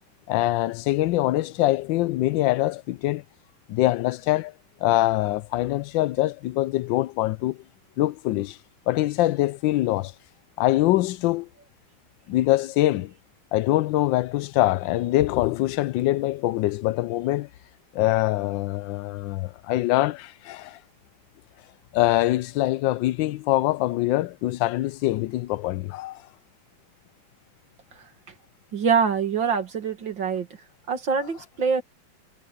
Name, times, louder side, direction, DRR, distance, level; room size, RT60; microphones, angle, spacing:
voice 1, 0.3-3.2 3.7-4.5 4.8-7.6 8.0-8.6 8.9-10.1 10.6-11.5 12.3-13.1 13.5-17.5 17.9-20.8 21.9-26.2, left 16 dB, 80° left, 1.3 m, -24 dB
voice 2, 28.7-30.5 30.9-31.8, right 6 dB, 70° right, 3.0 m, -24 dB
omnidirectional pair, 2.1 m